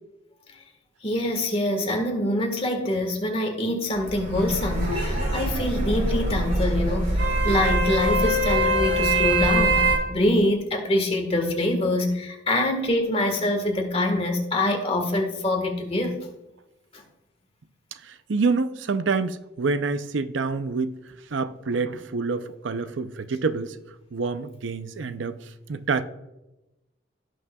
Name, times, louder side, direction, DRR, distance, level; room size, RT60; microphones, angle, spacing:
voice 1, 1.0-16.3, left 1 dB, 30° left, 4 dB, 1.5 m, -25 dB
sound 1, 4.0-10.0, right 1 dB, 45° right, 3.5 m, -23 dB
voice 2, 18.0-21.0 21.3-23.8 24.1-26.0, right 4 dB, 80° right, 11 dB, 0.6 m, -27 dB
17.0 x 6.3 x 2.3 m, 0.96 s
head